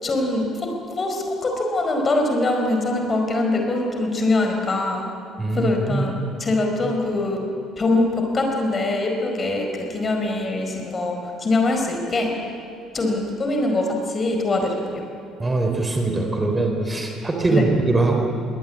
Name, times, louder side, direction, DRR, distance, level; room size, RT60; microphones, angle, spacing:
voice 1, 0.0-0.7 1.0-5.0 5.5-6.1 6.4-7.5 7.8-12.3 12.9-15.0 17.5-17.7, left 2 dB, 30° left, 3 dB, 4.8 m, -23 dB
voice 2, 5.4-6.1 15.4-18.2, right 2 dB, 20° right, 2 dB, 3.7 m, -22 dB
22.5 x 18.5 x 8.6 m, 2.8 s
figure-of-eight pair, 50°, 0 cm